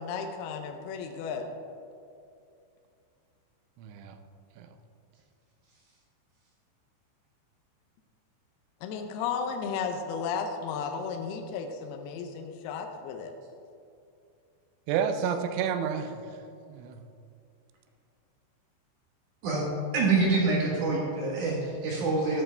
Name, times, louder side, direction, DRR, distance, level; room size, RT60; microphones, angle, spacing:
voice 1, 0.0-1.5 8.8-13.3, left 6 dB, 80° left, 4 dB, 2.3 m, -34 dB
voice 2, 3.8-4.2 4.6-4.7 14.9-16.3 16.7-17.0, right 7 dB, 85° right, 8 dB, 3.1 m, -30 dB
voice 3, 19.4-22.4, right 3 dB, 65° right, -2 dB, 2.1 m, -26 dB
12.0 x 12.0 x 3.4 m, 2.5 s
omnidirectional pair, 5.4 m